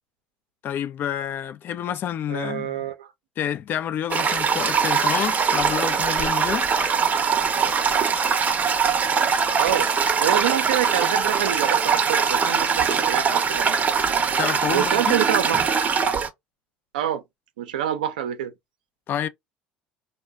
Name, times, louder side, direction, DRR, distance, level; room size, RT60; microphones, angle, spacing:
voice 1, 0.6-2.8 3.4-6.7 14.4-15.2 19.1-19.3, left 9 dB, 50° left, 0.4 m, -28 dB
voice 2, 2.3-3.1 9.6-9.9 10.2-13.8 14.7-15.6 16.9-17.2 17.6-18.5, right 11 dB, 90° right, 0.5 m, -26 dB
Toilet flush, 4.1-16.3, right 6 dB, 35° right, 0.6 m, -22 dB
2.2 x 2.1 x 3.5 m
hypercardioid pair, 80°, 4 cm